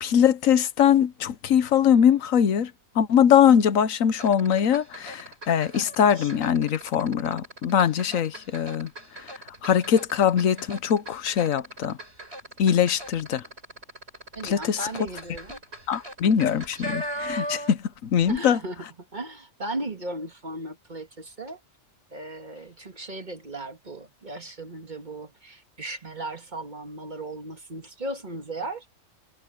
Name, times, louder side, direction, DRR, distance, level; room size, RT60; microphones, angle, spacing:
voice 1, 0.0-2.7 3.0-8.9 9.6-12.0 12.6-13.4 14.4-14.8 15.9-18.6, left 8 dB, 80° left, 1.3 m, -22 dB
sound 1, 4.1-17.9 18.2-18.4, equal, 50° right, 7.8 m, -39 dB
voice 2, 14.3-15.6 18.3-18.9 19.1-21.6 22.1-28.9, right 2 dB, 35° right, 1.8 m, -36 dB
omnidirectional pair, 1.4 m